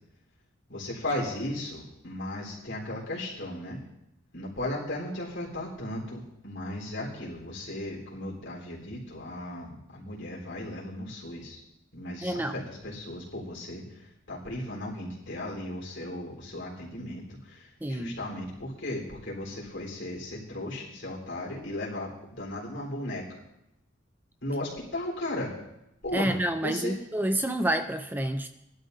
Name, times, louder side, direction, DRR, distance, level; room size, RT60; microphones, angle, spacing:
voice 1, 0.7-3.8 4.3-11.6 11.9-23.2 24.4-25.6 26.0-26.3 26.6-27.0, left 1 dB, 65° left, -3 dB, 3.9 m, -36 dB
voice 2, 12.2-12.6 17.8-18.2 26.1-28.5, right 1 dB, 10° right, 8 dB, 0.4 m, -28 dB
20.5 x 12.0 x 2.7 m, 0.86 s
head